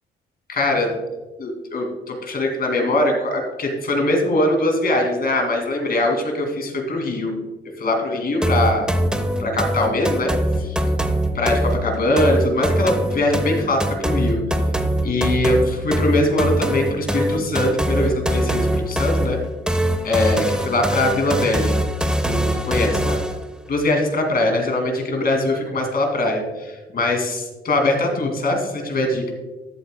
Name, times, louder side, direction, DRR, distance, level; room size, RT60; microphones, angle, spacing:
voice 1, 0.5-0.9 1.4-7.4 7.8-8.9 9.4-10.3 10.6-10.8 11.3-14.4 15.0-15.6 15.8-19.4 20.0-21.7 22.0-23.2 23.7-29.3, left 1 dB, 50° left, 2 dB, 2.5 m, -22 dB
sound 1, 8.4-23.4, right 1 dB, 5° right, 0.8 m, -22 dB
13.5 x 8.2 x 2.3 m, 1.2 s
cardioid pair, 90°, 20 cm